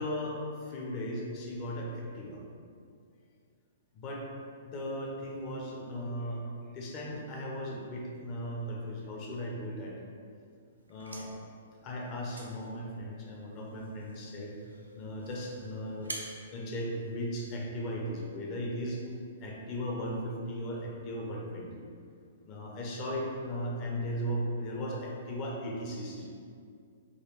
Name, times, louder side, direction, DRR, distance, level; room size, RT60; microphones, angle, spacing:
voice 1, 0.0-2.4 3.9-4.3 4.7-6.4 6.7-10.0 10.9-11.3 11.8-14.5 14.9-16.1 16.5-19.0 19.4-21.9 22.4-26.2, equal, 35° left, -1 dB, 0.7 m, -37 dB
sound 1, 10.7-17.6, right 2 dB, 80° right, 0.5 m, -49 dB
4.0 x 2.3 x 3.1 m, 2.3 s
figure-of-eight pair, 115°, 0 cm